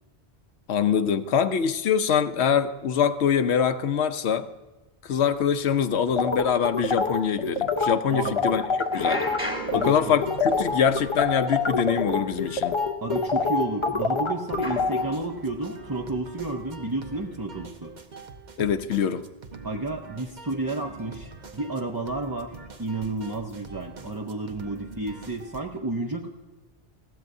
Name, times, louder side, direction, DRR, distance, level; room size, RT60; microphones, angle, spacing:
voice 1, 0.7-4.5 5.0-8.6 8.9-9.2 9.7-12.8 18.6-19.2, left 7 dB, 85° left, 10 dB, 1.0 m, -24 dB
sound 1, 5.3-5.4 5.9-6.1 6.4-6.5 6.8-6.9 8.8-11.8 12.0-12.4 13.3-13.4 14.6-17.0, left 1 dB, 5° right, 1.6 m, -38 dB
sound 2, 6.2-9.4 9.7-9.9 10.2-15.0, left 4 dB, 30° left, 0.9 m, -25 dB
voice 2, 8.1-8.6 9.7-10.1 13.0-17.9 19.6-22.5 22.8-26.3, right 2 dB, 25° right, 2 dB, 0.6 m, -31 dB
sound 3, 9.4-25.6, right 4 dB, 45° right, 1.0 m, -44 dB
20.5 x 15.0 x 2.7 m, 1.1 s
omnidirectional pair, 1.1 m